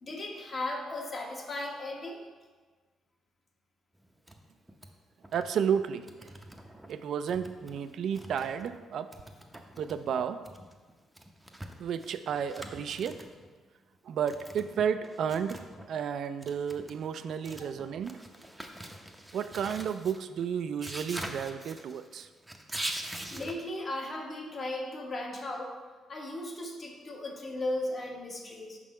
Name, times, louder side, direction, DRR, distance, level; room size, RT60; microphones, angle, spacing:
voice 1, 0.0-2.2 23.3-25.7 26.1-28.8, left 1 dB, 40° left, 0 dB, 1.1 m, -36 dB
sound 1, 4.0-4.4 4.7-4.9 5.2-5.5 5.8-6.9 7.3-8.8 9.1-13.5 14.3-15.9 16.2-23.5, right 1 dB, 10° right, 0.6 m, -44 dB
voice 2, 5.3-6.3 6.9-9.1 9.8-10.4 11.8-13.3 14.1-18.2 19.3-22.3, right 7 dB, 70° right, 11 dB, 0.3 m, -32 dB
5.4 x 3.7 x 5.0 m, 1.4 s
cardioid pair, 90°, 0 cm